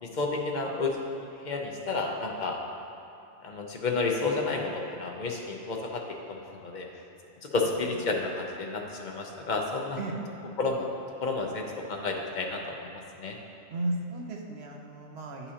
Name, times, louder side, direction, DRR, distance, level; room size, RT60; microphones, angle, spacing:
voice 1, 0.0-0.9 1.4-2.6 3.4-6.0 6.3-6.9 7.5-10.0 10.6-10.9 11.2-13.3, left 3 dB, 50° left, 1 dB, 0.6 m, -31 dB
voice 2, 13.7-15.5, right 2 dB, 65° right, 1 dB, 1.0 m, -35 dB
9.3 x 5.5 x 2.8 m, 2.7 s
omnidirectional pair, 1.2 m